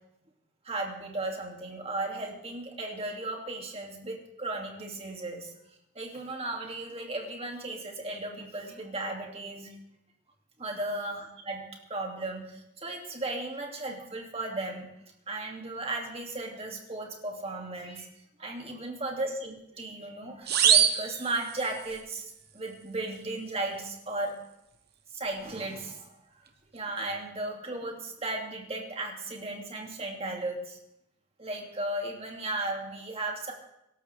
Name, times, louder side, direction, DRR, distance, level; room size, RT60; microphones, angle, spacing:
voice 1, 0.6-5.5 5.9-9.7 10.6-14.9 15.3-18.1 18.4-24.4 25.1-26.2 26.7-30.8 31.4-33.5, right 2 dB, 30° right, 1 dB, 2.5 m, -35 dB
sound 1, 20.5-22.0, right 8 dB, 50° right, 1.2 m, -24 dB
23.5 x 12.5 x 3.5 m, 0.84 s
head